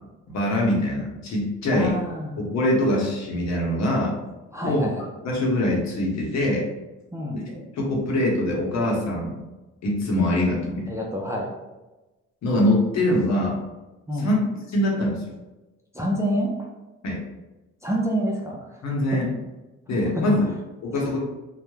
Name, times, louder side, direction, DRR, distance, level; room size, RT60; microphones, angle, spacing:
voice 1, 0.3-2.0 2.4-4.1 4.6-4.9 5.2-6.6 7.5-9.4 9.8-10.9 12.4-13.5 14.2-14.4 14.7-15.2 17.0-17.2 18.8-19.3 19.9-20.5 20.8-21.2, left 1 dB, 65° left, -2 dB, 0.8 m, -23 dB
voice 2, 1.7-2.4 4.5-5.1 7.1-7.4 10.9-11.5 14.1-14.3 15.9-16.7 17.8-18.8 19.1-19.2 20.2-20.3 20.9-21.2, equal, 10° right, -3 dB, 0.4 m, -27 dB
2.3 x 2.1 x 3.0 m, 1.1 s
cardioid pair, 90°, 30 cm